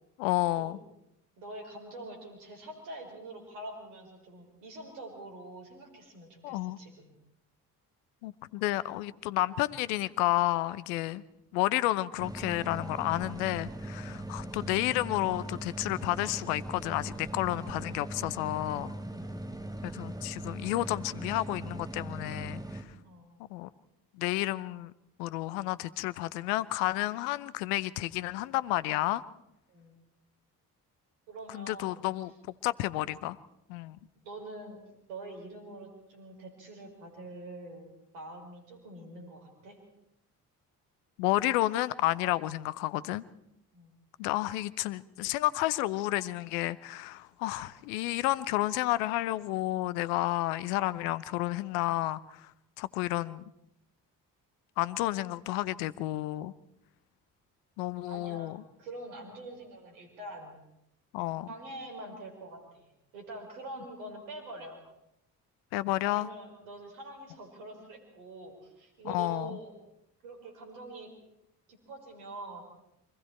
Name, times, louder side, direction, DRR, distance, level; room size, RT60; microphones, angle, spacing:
voice 1, 0.2-0.8 6.4-6.8 8.2-11.2 11.5-18.9 19.8-22.8 23.5-23.7 24.1-24.9 25.2-29.2 31.5-32.3 32.6-33.4 33.7-34.0 41.2-43.2 44.2-52.5 52.8-53.4 54.8-56.5 57.8-58.6 61.1-61.5 65.7-66.3 69.0-69.6, left 17 dB, 70° left, 18 dB, 0.9 m, -31 dB
voice 2, 1.4-7.2 14.0-14.3 19.1-19.4 23.0-23.4 29.7-30.0 31.3-32.1 34.2-34.8 35.1-37.9 38.1-39.8 43.7-44.0 58.1-60.6 61.5-64.8 66.0-69.7 70.2-71.1 71.7-72.6, right 2 dB, 75° right, 3 dB, 5.1 m, -45 dB
sound 1, 12.2-22.8, right 1 dB, 10° right, 3.1 m, -40 dB
29.5 x 24.5 x 4.5 m, 0.81 s
figure-of-eight pair, 40°, 47 cm